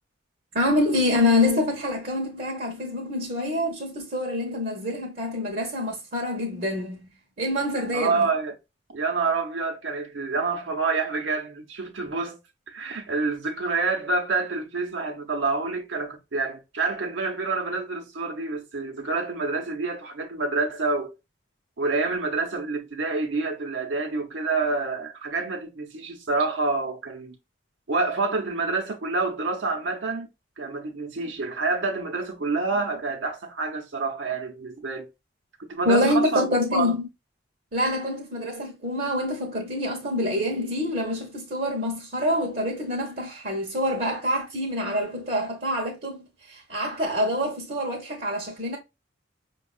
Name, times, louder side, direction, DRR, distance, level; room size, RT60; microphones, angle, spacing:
voice 1, 0.5-8.3 35.8-37.1 37.7-48.8, left 1 dB, 50° right, 0.8 m, -26 dB
voice 2, 7.9-8.5 8.9-12.4 12.7-21.1 21.8-27.4 27.9-30.3 30.6-35.1 35.7-36.5 36.7-36.9, right 3 dB, 80° right, 0.7 m, -27 dB
5.2 x 2.3 x 2.3 m
head